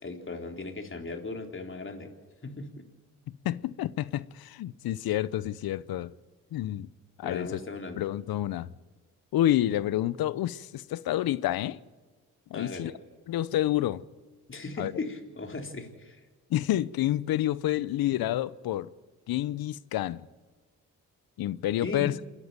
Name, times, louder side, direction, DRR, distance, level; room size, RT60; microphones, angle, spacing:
voice 1, 0.0-2.1 2.4-2.7 7.2-8.0 12.5-12.9 14.5-16.2 21.8-22.2, left 3 dB, 35° left, 3.6 m, -37 dB
voice 2, 3.4-6.1 6.5-6.9 7.2-7.6 8.0-8.7 9.3-11.8 12.5-12.9 13.3-14.0 14.8-14.9 16.5-18.9 19.3-20.3 21.4-22.1, left 13 dB, 70° left, 0.8 m, -29 dB
28.0 x 11.0 x 9.2 m
supercardioid pair, 55°, 37 cm